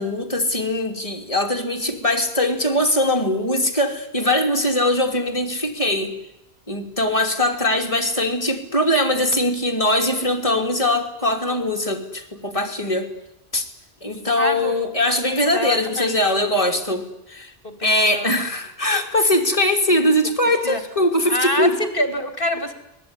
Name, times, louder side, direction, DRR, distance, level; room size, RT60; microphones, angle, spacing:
voice 1, 0.0-6.2 6.7-13.1 13.5-13.6 14.0-17.5 17.8-21.8, left 1 dB, 35° left, 3 dB, 3.3 m, -21 dB
voice 2, 14.4-14.7 15.5-16.2 17.6-18.3 20.6-20.8 21.3-22.7, left 1 dB, 60° left, 9 dB, 3.2 m, -25 dB
25.0 x 18.5 x 9.9 m, 0.88 s
omnidirectional pair, 1.0 m